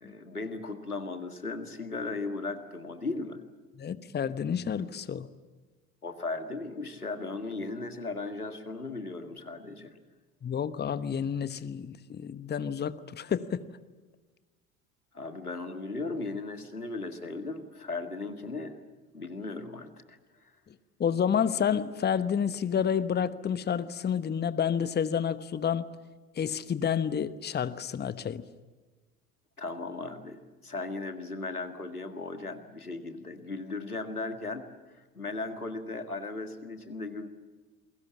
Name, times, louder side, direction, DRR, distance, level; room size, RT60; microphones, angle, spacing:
voice 1, 0.0-3.4 6.0-10.0 15.1-18.8 19.1-20.5 29.6-34.7 35.0-37.3, left 3 dB, 90° left, 9 dB, 1.9 m, -37 dB
voice 2, 3.8-5.3 10.4-13.6 21.0-25.9 26.4-28.4, left 8 dB, 25° left, 14 dB, 1.1 m, -29 dB
29.0 x 22.5 x 7.2 m, 1.3 s
figure-of-eight pair, 65°, 43 cm